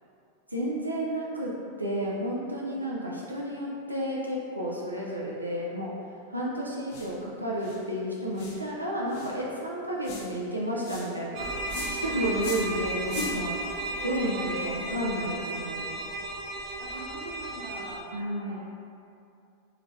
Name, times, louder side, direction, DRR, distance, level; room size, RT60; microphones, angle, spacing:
voice 1, 0.5-1.5 1.8-5.9 6.3-13.6 14.0-16.0 18.1-18.6, equal, 85° right, -5 dB, 0.5 m, -31 dB
sound 1, 6.9-7.1 7.6-7.8 8.4-8.6 9.1-9.4 10.0-10.3 10.8-11.1 11.7-12.0 12.4-12.7 13.1-13.4, left 3 dB, 50° left, 0.6 m, -38 dB
sound 2, 11.3-18.0, right 2 dB, 40° right, 0.6 m, -34 dB
voice 2, 12.7-13.3 13.9-14.8 16.8-18.2 18.5-18.6, right 2 dB, 20° right, -6 dB, 0.9 m, -42 dB
3.9 x 3.3 x 2.6 m, 2.6 s
figure-of-eight pair, 90°, 0 cm